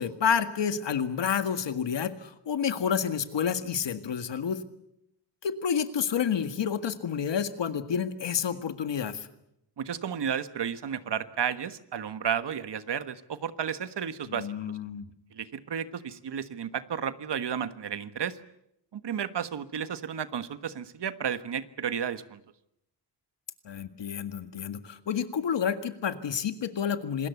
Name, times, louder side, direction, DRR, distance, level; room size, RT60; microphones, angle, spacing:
voice 1, 0.0-4.6 5.4-9.3 14.3-15.1 23.6-27.3, left 7 dB, 75° left, 10 dB, 1.9 m, -29 dB
voice 2, 9.8-14.5 15.3-18.4 18.9-22.4, right 8 dB, 70° right, 12 dB, 1.4 m, -32 dB
26.5 x 20.5 x 8.3 m, 0.80 s
wide cardioid pair, 100°, 43 cm